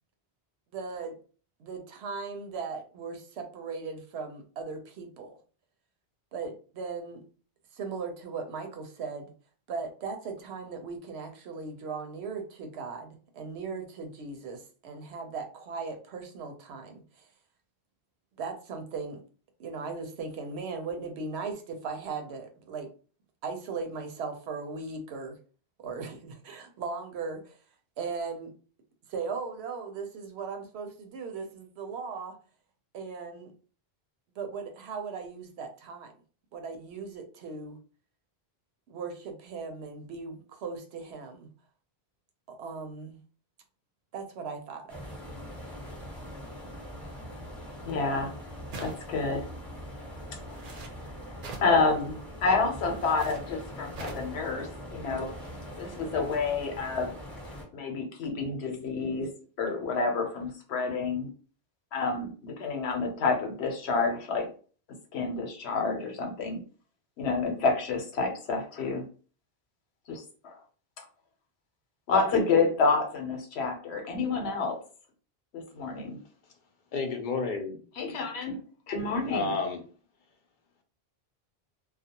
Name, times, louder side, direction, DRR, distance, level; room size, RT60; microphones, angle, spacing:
voice 1, 0.7-1.2 1.6-5.4 6.3-7.2 7.7-9.3 9.7-17.3 18.4-19.2 19.6-22.9 23.4-25.4 25.8-27.6 28.0-28.5 29.1-32.3 32.9-33.5 34.4-36.1 36.5-37.8 38.9-41.5 42.5-43.2 44.1-45.2, right 4 dB, 85° right, 5 dB, 0.9 m, -38 dB
sound 1, 44.9-57.6, equal, ahead, 0.8 m, -42 dB
voice 2, 47.8-48.3 48.8-49.4 51.6-55.3 55.8-57.1 57.7-59.3 59.6-61.3 61.9-64.5 65.1-66.6 67.2-69.0 70.1-70.6 72.1-74.8 75.5-76.2 78.0-78.6 78.9-79.5, left 4 dB, 90° left, 3 dB, 1.0 m, -28 dB
sound 2, 48.7-49.3 50.5-50.9 51.4-51.8 52.9-53.4 53.9-54.3, right 2 dB, 60° right, 0.7 m, -42 dB
voice 3, 76.9-77.8 79.3-79.8, left 4 dB, 60° left, 5 dB, 0.6 m, -30 dB
2.3 x 2.1 x 2.8 m, 0.40 s
omnidirectional pair, 1.1 m